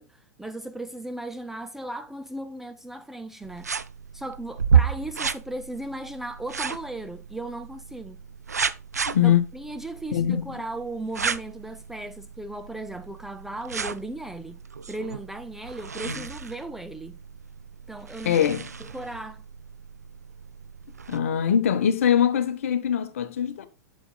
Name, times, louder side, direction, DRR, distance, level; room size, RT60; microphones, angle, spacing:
voice 1, 0.0-3.7 4.1-8.2 9.2-14.6 14.9-17.2 17.9-18.4 18.9-19.4, right 1 dB, 5° right, 0.3 m, -36 dB
sound 1, 3.4-21.2, right 7 dB, 75° right, 0.4 m, -32 dB
voice 2, 9.1-9.4 10.1-10.6 16.0-16.3 18.2-18.7 21.1-23.7, left 9 dB, 55° left, 0.9 m, -23 dB
8.0 x 7.2 x 2.2 m
figure-of-eight pair, 100°, 9 cm